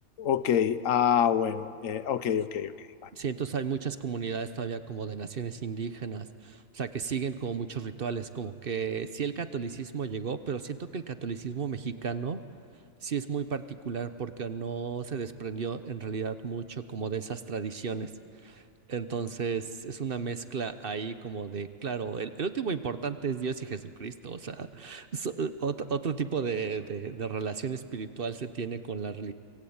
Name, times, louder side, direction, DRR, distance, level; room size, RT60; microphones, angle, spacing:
voice 1, 0.2-2.7, left 9 dB, 80° left, 14 dB, 1.2 m, -26 dB
voice 2, 3.1-12.4 13.0-18.1 18.4-18.6 18.9-29.3, right 6 dB, 50° right, 11 dB, 1.0 m, -33 dB
24.5 x 21.0 x 8.8 m, 2.4 s
omnidirectional pair, 1.4 m